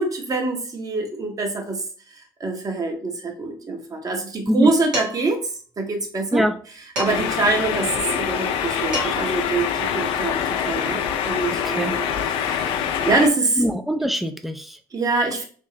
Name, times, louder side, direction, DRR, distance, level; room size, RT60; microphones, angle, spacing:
voice 1, 0.0-1.8 2.4-5.4 5.8-6.4 7.0-9.7 9.9-13.6 14.9-15.4, right 3 dB, 35° right, 3 dB, 1.1 m, -24 dB
Dishes pots and pans, 4.9-5.4 7.0-7.4 8.6-8.7 8.9-9.4, equal, 85° right, 1.6 m, -29 dB
sound 1, 7.0-13.3, left 8 dB, 60° left, 0.5 m, -25 dB
voice 2, 11.6-11.9 13.6-14.8, equal, ahead, 8 dB, 0.5 m, -23 dB
3.5 x 3.1 x 2.9 m, 0.44 s
hypercardioid pair, 60°, 10 cm